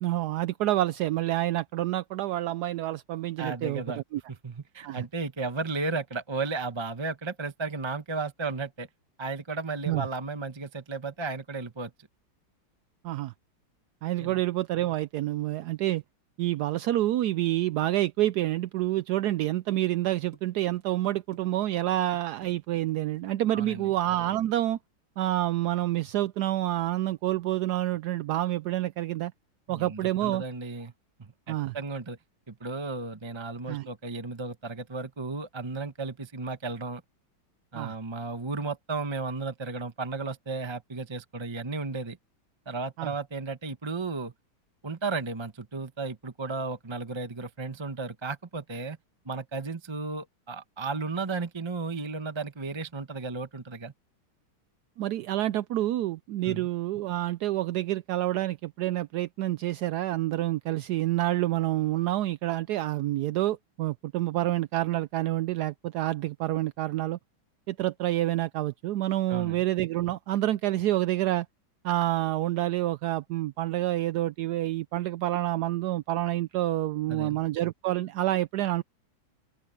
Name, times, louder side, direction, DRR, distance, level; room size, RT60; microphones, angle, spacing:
voice 1, 0.0-4.2 4.8-5.0 9.9-10.1 13.0-13.3 14.0-16.0 16.4-24.8 25.2-29.3 29.7-30.4 31.5-31.8 33.7-33.9 37.7-38.0 43.0-43.1 55.0-67.2 67.7-71.5 71.8-78.8, right 15 dB, 75° right, 0.9 m, -28 dB
voice 2, 3.4-4.0 4.3-8.9 9.2-11.9 14.2-14.4 23.5-23.9 29.7-30.9 31.2-32.2 32.5-37.0 37.7-42.2 42.7-44.3 44.8-49.0 49.2-53.9 56.4-56.7 69.3-69.6 77.1-77.4, right 3 dB, 20° right, 0.8 m, -34 dB
sound 1, 18.6-18.7 19.0-20.4 20.8-21.4 21.7-21.9 22.1-23.5, right 5 dB, 45° right, 2.0 m, -53 dB
omnidirectional pair, 2.1 m